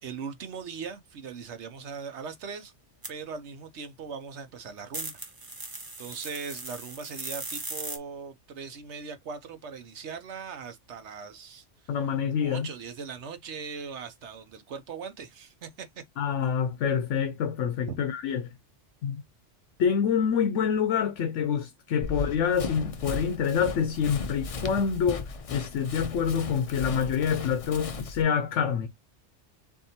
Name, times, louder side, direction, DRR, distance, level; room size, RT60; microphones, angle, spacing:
voice 1, 0.0-2.7 3.1-5.1 6.0-12.0 12.4-16.0 17.9-18.0, right 5 dB, 70° right, 1.0 m, -40 dB
sound 1, 3.0-3.1 4.9-8.0, right 2 dB, 20° right, 0.9 m, -38 dB
voice 2, 11.9-12.7 16.2-18.5 19.0-19.2 19.8-28.9, left 7 dB, 80° left, 1.0 m, -27 dB
Run, 22.0-28.2, left 4 dB, 45° left, 0.4 m, -36 dB
7.0 x 2.6 x 2.7 m
omnidirectional pair, 1.2 m